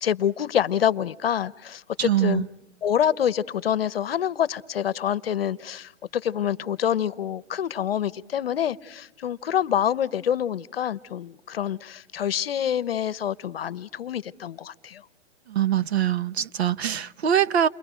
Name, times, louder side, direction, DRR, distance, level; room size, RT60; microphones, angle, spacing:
voice 1, 0.0-2.4 2.8-15.0, left 9 dB, 55° left, 0.9 m, -26 dB
voice 2, 2.0-2.5 15.5-17.7, right 10 dB, 60° right, 0.9 m, -23 dB
29.5 x 23.0 x 5.0 m
hypercardioid pair, 170°, 36 cm